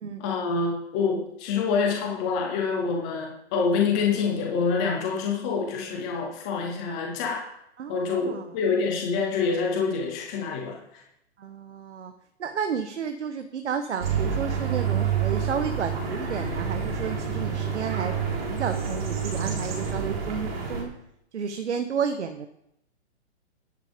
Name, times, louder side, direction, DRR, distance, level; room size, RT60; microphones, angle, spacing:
voice 1, 0.2-7.5 7.9-10.8, left 5 dB, 5° left, 0 dB, 0.4 m, -26 dB
voice 2, 7.8-8.5 11.4-12.1 12.4-20.9 21.3-22.5, right 6 dB, 85° right, 7 dB, 1.2 m, -32 dB
sound 1, 14.0-20.8, right 6 dB, 60° right, 3.8 m, -28 dB
10.5 x 8.0 x 5.1 m, 0.78 s
hypercardioid pair, 160°, 34 cm